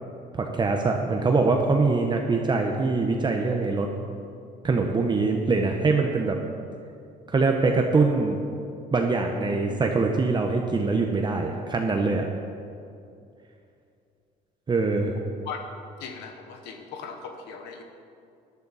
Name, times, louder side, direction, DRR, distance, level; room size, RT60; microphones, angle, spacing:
voice 1, 0.3-3.9 4.6-6.4 7.3-8.4 8.9-12.3 14.7-15.1, right 3 dB, 25° right, 2 dB, 0.9 m, -23 dB
voice 2, 16.0-17.8, left 6 dB, 85° left, 4 dB, 1.1 m, -38 dB
14.0 x 10.5 x 4.2 m, 2.5 s
cardioid pair, 110°, 17 cm